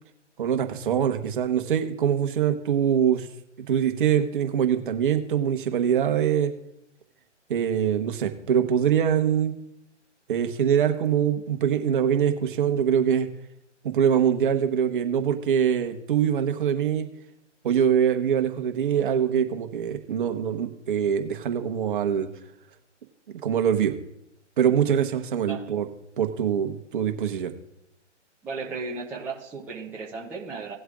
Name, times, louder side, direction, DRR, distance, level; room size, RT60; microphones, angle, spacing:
voice 1, 0.4-3.3 3.7-6.5 7.5-9.5 10.3-13.3 13.8-17.1 17.6-22.3 23.4-23.9 24.6-25.9 26.2-27.5, right 8 dB, 45° right, 6 dB, 1.2 m, -23 dB
voice 2, 28.4-30.7, right 4 dB, 5° right, -5 dB, 0.7 m, -35 dB
18.0 x 7.9 x 2.5 m, 0.78 s
hypercardioid pair, 145°, 36 cm